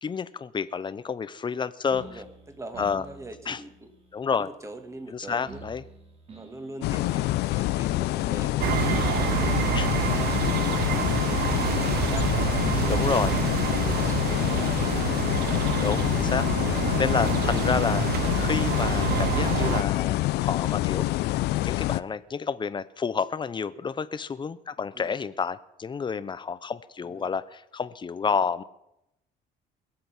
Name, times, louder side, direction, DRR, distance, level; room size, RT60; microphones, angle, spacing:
voice 1, 0.0-2.0 2.8-3.0 3.5-3.6 4.1-4.5 5.1-5.8 8.8-9.1 9.7-9.9 12.9-13.3 15.8-18.1 18.4-21.3 21.6-28.6, left 6 dB, 30° left, 15 dB, 0.8 m, -30 dB
sound 1, 1.9-9.4, right 1 dB, 35° right, 3.0 m, -50 dB
voice 2, 2.0-3.9 4.3-5.6 6.4-8.7 9.1-9.6 9.9-12.9 13.5-15.1 24.9-25.2 27.0-27.3, right 1 dB, 15° right, 7 dB, 2.0 m, -43 dB
sound 2, 6.8-22.0, left 17 dB, 80° left, 0.5 m, -26 dB
sound 3, 8.6-19.8, right 13 dB, 70° right, 0.7 m, -28 dB
21.5 x 7.8 x 6.1 m, 0.85 s
cardioid pair, 110°, 17 cm